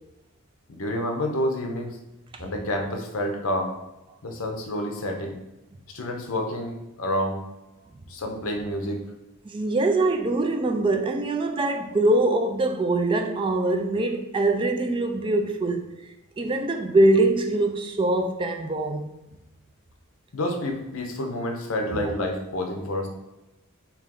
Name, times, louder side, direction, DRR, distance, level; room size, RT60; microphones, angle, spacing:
voice 1, 0.7-2.0 2.4-3.7 4.2-5.4 5.9-7.4 8.1-9.0 20.3-23.1, left 1 dB, 70° left, 0.7 m, -29 dB
voice 2, 9.4-15.9 16.4-19.1 21.9-22.1, right 2 dB, 25° right, 0.3 m, -23 dB
3.3 x 2.9 x 3.7 m
head